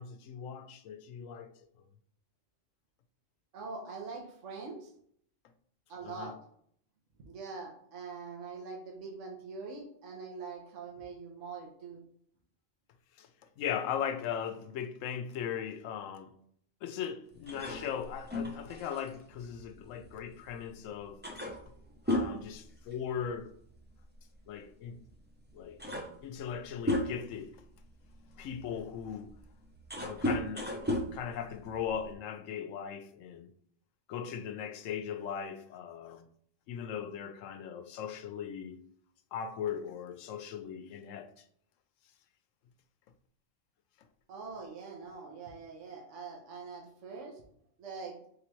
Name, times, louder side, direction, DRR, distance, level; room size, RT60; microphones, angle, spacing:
voice 1, 0.0-1.5 6.0-6.3 13.2-13.3 13.6-16.3 16.8-21.2 22.1-23.5 24.5-25.0 25.5-25.8 26.2-27.6 28.4-29.3 30.0-30.8 31.1-33.5 34.1-36.3 36.7-38.8 39.3-41.4, left 8 dB, 90° left, 1.0 m, -38 dB
voice 2, 3.5-4.9 5.9-6.4 7.2-12.0 44.3-47.4 47.8-48.2, right 4 dB, 75° right, 1.3 m, -43 dB
sound 1, 17.5-20.5 20.8-20.9 21.2-23.4 23.7-23.9 24.9-25.0 25.5-27.4 28.0-32.1, left 1 dB, 10° right, 0.6 m, -35 dB
4.9 x 3.4 x 3.1 m
omnidirectional pair, 1.3 m